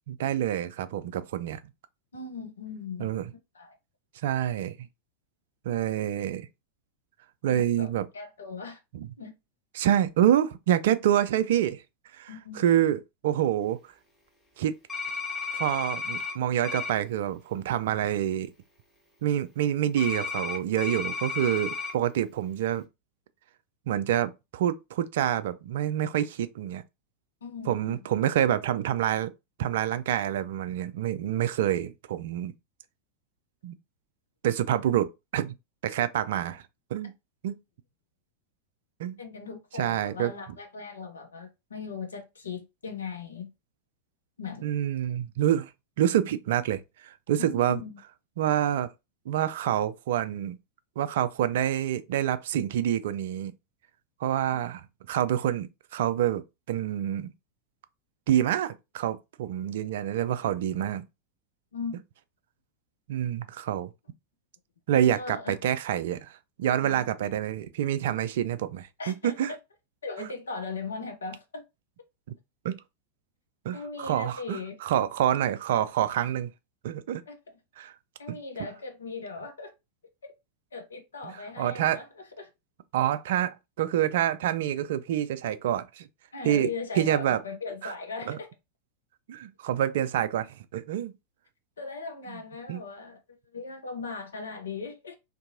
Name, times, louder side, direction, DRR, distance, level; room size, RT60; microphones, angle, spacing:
voice 1, 0.1-1.6 3.0-3.2 4.2-4.8 5.7-6.5 7.4-8.1 8.9-9.1 9.7-11.8 12.1-13.8 14.6-14.7 15.5-18.5 19.2-22.8 23.9-26.8 27.7-29.3 29.6-32.5 33.6-33.8 34.4-35.5 35.8-36.6 36.9-37.1 37.4-37.6 39.0-39.2 39.8-40.3 44.6-45.7 46.0-47.8 48.4-48.9 49.3-50.6 51.0-53.5 54.2-57.3 58.3-61.0 63.1-63.9 64.9-69.5 70.2-70.3 72.6-72.8 73.6-76.5 76.8-77.2 77.8-77.9 78.3-78.4 81.2-82.0 82.9-86.1 86.4-86.7 87.0-87.4 87.8-87.9 88.3-88.4 89.3-90.5 90.7-91.1 92.3-92.4 92.7-92.8, right 11 dB, 55° right, 0.3 m, -27 dB
voice 2, 2.1-3.1 3.5-3.8 7.5-8.8 9.2-9.4 12.3-12.6 27.4-28.0 39.2-43.5 44.4-44.7 47.4-48.0 61.7-62.0 64.9-65.6 66.7-67.3 69.0-69.6 70.0-71.6 73.7-74.8 77.3-77.4 78.2-79.7 80.2-80.3 80.7-82.5 86.3-88.5 91.8-93.2 93.5-95.2, left 4 dB, 70° left, 0.6 m, -38 dB
sound 1, 14.9-16.3 16.6-16.9 20.0-21.9, left 4 dB, 15° left, 1.2 m, -33 dB
2.6 x 2.6 x 2.6 m
figure-of-eight pair, 90°, 0 cm